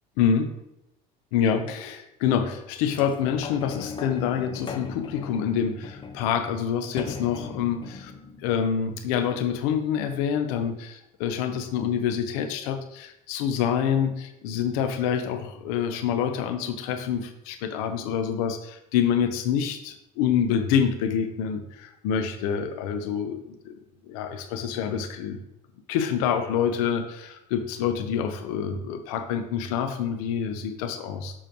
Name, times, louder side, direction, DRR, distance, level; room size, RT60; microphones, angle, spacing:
voice 1, 1.3-8.1 8.4-23.4 23.6-23.7 24.1-25.4 25.9-31.3, left 8 dB, 85° left, 7 dB, 0.9 m, -27 dB
sound 1, 2.9-9.7 10.3-10.4, left 5 dB, 25° left, 0.8 m, -40 dB
7.6 x 6.3 x 3.0 m, 0.85 s
supercardioid pair, 105°, 18 cm